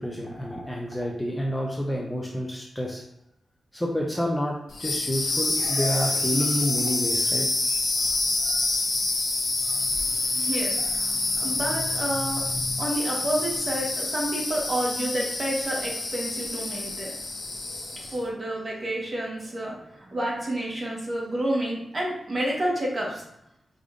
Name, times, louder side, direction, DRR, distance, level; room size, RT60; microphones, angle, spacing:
voice 1, 0.0-3.0 3.7-7.5, equal, 10° left, -2 dB, 0.5 m, -29 dB
sound 1, 4.7-18.2, left 2 dB, 65° left, 1.0 m, -27 dB
voice 2, 9.9-12.5 12.8-17.1 18.0-23.2, right 1 dB, 30° right, -3 dB, 1.2 m, -30 dB
5.1 x 2.5 x 3.6 m, 0.80 s
wide cardioid pair, 165°, 0 cm